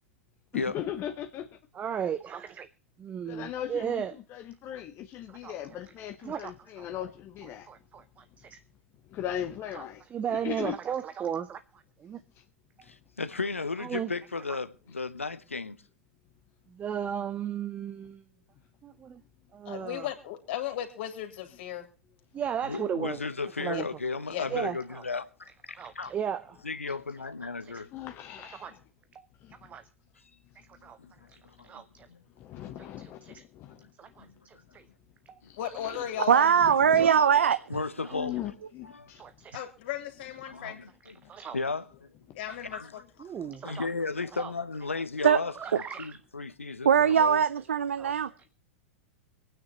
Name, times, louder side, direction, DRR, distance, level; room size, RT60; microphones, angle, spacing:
voice 1, 0.5-1.5 3.3-4.0 4.3-7.7 9.1-10.0 10.3-10.8 12.3-12.4 24.5-24.6 27.9-28.8 29.4-29.7 30.7-30.8 32.4-34.2 35.4-36.3 36.6-37.1 38.1-39.2, left 11 dB, 35° left, 1.0 m, -38 dB
voice 2, 1.7-2.7 3.0-4.1 5.3-5.5 6.2-6.9 7.7-8.6 9.8-9.9 10.1-12.2 13.8-14.1 16.7-18.2 18.8-19.2 19.5-20.1 22.3-23.2 23.6-23.9 24.5-24.8 25.7-26.6 27.6-27.8 28.6-28.7 29.6-29.8 30.8-31.0 31.3-31.4 31.6-32.1 33.0-33.4 34.0-34.8 35.3-35.4 35.8-36.0 37.0-37.1 38.1-38.2 39.2-39.6 40.6-40.7 41.0-41.6 43.2-43.9 44.4-44.5 45.6-46.1 48.0-48.1, right 8 dB, 25° right, 0.7 m, -35 dB
voice 3, 12.8-15.8 22.6-26.1 26.6-27.9 31.0-31.1 31.4-32.2 34.2-34.6 37.7-38.4 38.8-39.1 40.5-41.2 41.5-42.1 42.7-43.0 43.4-45.5 46.0-47.4, left 4 dB, 85° left, 0.9 m, -35 dB
voice 4, 19.6-21.9 23.7-23.8 24.3-24.5 35.6-36.5 39.5-40.8 41.2-41.3 42.3-43.0, left 11 dB, 55° left, 3.1 m, -36 dB
voice 5, 36.3-37.6 45.2-45.4 46.8-48.3, right 8 dB, 75° right, 0.6 m, -21 dB
25.5 x 9.3 x 2.9 m
figure-of-eight pair, 95°, 7 cm